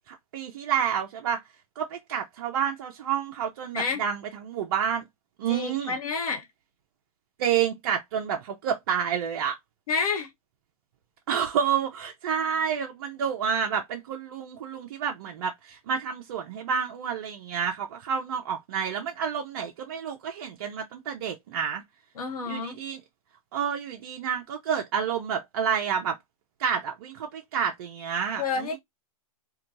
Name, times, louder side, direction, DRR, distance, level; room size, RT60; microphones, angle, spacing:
voice 1, 0.1-1.4 1.8-5.0 5.4-5.9 7.4-9.6 11.3-21.8 22.5-23.0 23.5-26.2 26.6-28.8, right 8 dB, 40° right, 0.4 m, -29 dB
voice 2, 5.5-6.5 9.9-10.3 22.2-22.8 28.4-28.8, left 5 dB, 80° left, 0.9 m, -29 dB
2.7 x 2.2 x 2.5 m
hypercardioid pair, 155°, 19 cm